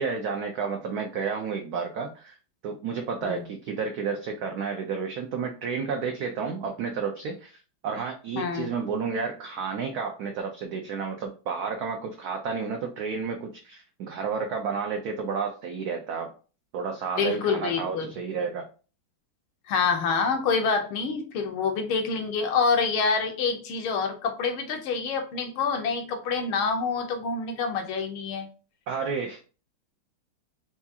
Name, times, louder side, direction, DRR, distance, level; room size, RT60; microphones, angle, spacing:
voice 1, 0.0-2.4 2.6-16.3 16.7-18.7 28.9-29.5, right 5 dB, 85° right, 3 dB, 0.8 m, -31 dB
voice 2, 8.4-8.7 17.2-18.1 19.7-28.5, left 5 dB, 80° left, 4 dB, 1.6 m, -27 dB
4.7 x 2.3 x 2.7 m, 0.36 s
omnidirectional pair, 2.2 m